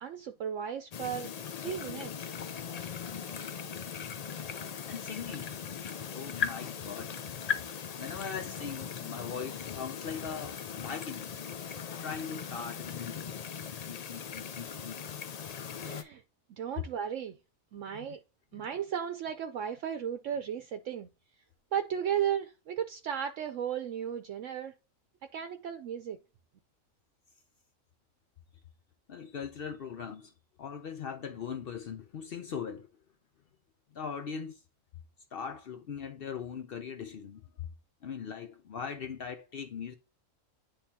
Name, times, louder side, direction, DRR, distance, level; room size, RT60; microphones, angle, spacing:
voice 1, 0.0-1.3 1.6-2.3 15.8-16.2 16.6-17.4 17.7-18.2 18.5-21.1 21.7-24.7 25.3-26.2, right 9 dB, 70° right, 1.0 m, -35 dB
sound 1, 0.9-16.0, left 7 dB, 90° left, 0.3 m, -39 dB
voice 2, 4.8-5.8 6.1-7.2 8.0-11.4 11.9-13.3 13.9-15.0 17.9-18.1 18.5-18.7 29.1-30.3 30.6-32.9 33.9-34.6 35.3-37.4 38.0-40.0, left 6 dB, 60° left, 0.6 m, -40 dB
10.0 x 3.5 x 2.8 m
omnidirectional pair, 1.4 m